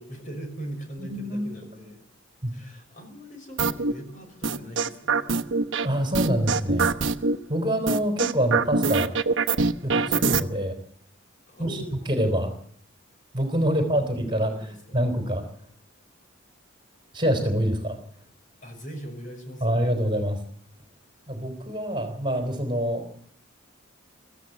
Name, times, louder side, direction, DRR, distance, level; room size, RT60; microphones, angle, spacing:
voice 1, 0.0-2.0 2.5-5.4 11.5-12.0 13.7-14.1 14.3-15.0 18.6-19.8, right 1 dB, 40° left, 4 dB, 5.8 m, -41 dB
voice 2, 1.0-1.5 2.4-2.5 5.8-6.9 7.5-9.1 9.8-10.8 11.6-11.8 12.1-12.5 13.3-15.4 17.1-18.0 19.6-20.4 21.3-23.1, equal, 25° right, 6 dB, 3.8 m, -26 dB
sound 1, 3.6-3.9 4.4-5.9 6.1-7.4 7.9-10.4, right 4 dB, 60° right, 1.1 m, -23 dB
24.0 x 15.0 x 8.2 m, 0.62 s
head